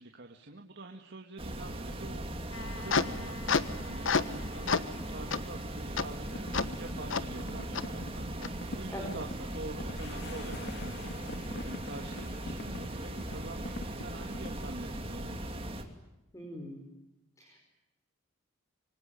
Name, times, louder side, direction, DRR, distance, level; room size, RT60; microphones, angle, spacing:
voice 1, 0.0-2.5 2.8-15.5, right 2 dB, 60° right, 2 dB, 2.1 m, -46 dB
sound 1, 1.4-15.8, right 1 dB, 30° right, 2.8 m, -39 dB
sound 2, 2.5-4.4 4.7-4.9 5.3-5.4 6.0-6.1 6.5-6.6 7.1-7.2 7.7-7.8 8.4-8.5, left 5 dB, 75° left, 1.2 m, -30 dB
sound 3, 6.3-14.7, left 1 dB, 55° left, 2.7 m, -45 dB
voice 2, 16.3-16.8 17.4-17.6, left 1 dB, 15° left, 2 dB, 5.3 m, -42 dB
26.0 x 25.0 x 9.2 m, 0.95 s
head